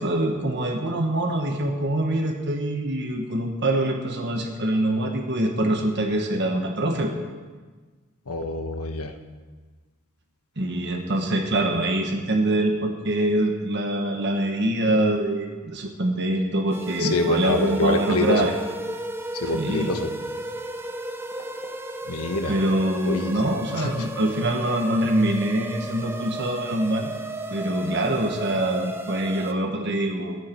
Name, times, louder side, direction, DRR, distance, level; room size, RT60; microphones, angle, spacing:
voice 1, 0.0-7.1 10.6-18.5 19.5-19.9 22.5-27.1 27.5-30.4, right 1 dB, 50° right, 3 dB, 1.4 m, -24 dB
voice 2, 8.3-9.1 17.0-18.5 19.4-20.1 22.1-22.5 23.0-23.3 23.8-24.1, left 2 dB, 90° left, 6 dB, 1.3 m, -26 dB
sound 1, 16.7-29.5, right 1 dB, 10° right, 0.6 m, -34 dB
26.0 x 9.1 x 4.6 m, 1.4 s
head